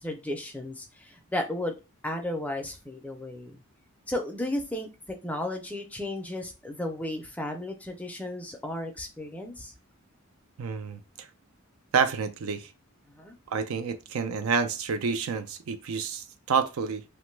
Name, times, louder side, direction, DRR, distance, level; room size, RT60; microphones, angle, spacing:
voice 1, 0.0-1.8 2.0-3.6 4.1-9.7 13.1-13.4, left 1 dB, 5° left, 0.4 m, -34 dB
voice 2, 10.6-11.3 11.9-12.7 13.5-17.0, right 6 dB, 70° right, 0.4 m, -29 dB
2.9 x 2.2 x 3.1 m
head